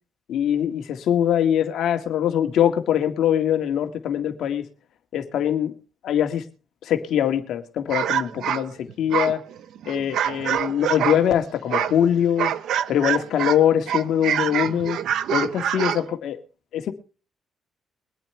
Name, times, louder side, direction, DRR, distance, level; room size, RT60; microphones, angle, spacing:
voice 1, 0.3-4.7 5.1-5.7 6.0-6.4 6.8-9.4 9.9-12.5 12.9-15.0 15.3-16.4 16.7-16.9, left 10 dB, 75° left, 6 dB, 1.9 m, -22 dB
sound 1, 7.9-11.3 11.7-13.6 13.9-16.1, right 10 dB, 75° right, 0.8 m, -25 dB
23.0 x 8.9 x 3.3 m, 0.35 s
cardioid pair, 90°, 0 cm